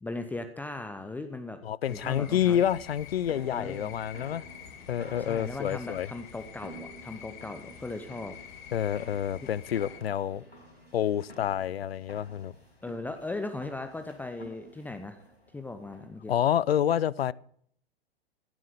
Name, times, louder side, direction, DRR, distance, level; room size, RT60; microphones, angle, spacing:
voice 1, 0.0-1.6 1.9-2.6 3.5-3.9 5.2-8.4 12.8-15.2 15.5-16.3, left 2 dB, 5° left, 0.8 m, -38 dB
voice 2, 1.6-4.4 4.9-6.1 8.7-10.4 10.9-12.5 16.3-17.3, left 10 dB, 70° left, 0.6 m, -28 dB
sound 1, 1.8-10.0, left 8 dB, 50° left, 2.0 m, -48 dB
sound 2, 2.4-16.3, right 1 dB, 90° left, 4.9 m, -52 dB
15.5 x 7.5 x 8.1 m
figure-of-eight pair, 105°, 31 cm